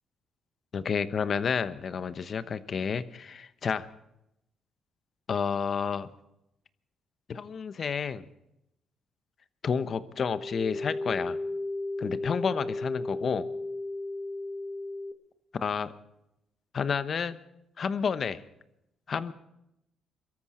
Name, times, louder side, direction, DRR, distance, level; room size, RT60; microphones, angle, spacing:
voice 1, 0.7-3.9 5.3-6.1 7.3-8.2 9.6-11.4 12.0-13.5 15.6-15.9 16.7-17.4 17.8-18.4 19.1-19.3, left 6 dB, 50° left, 12 dB, 1.0 m, -30 dB
sound 1, 10.2-15.1, left 2 dB, 5° left, 1.4 m, -34 dB
23.5 x 13.5 x 4.4 m, 0.84 s
cardioid pair, 90°, 0 cm